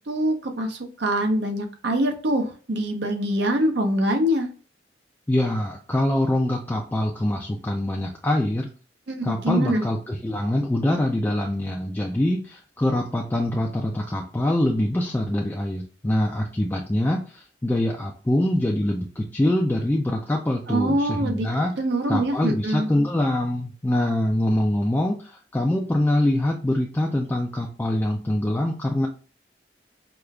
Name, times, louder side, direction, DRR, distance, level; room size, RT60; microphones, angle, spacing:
voice 1, 0.1-4.5 9.1-9.8 20.7-21.5 21.8-22.9, right 1 dB, 65° right, 4 dB, 0.6 m, -24 dB
voice 2, 5.3-8.7 9.2-21.7 22.1-29.1, left 1 dB, 10° left, -1 dB, 0.3 m, -24 dB
4.8 x 2.3 x 2.2 m, 0.37 s
head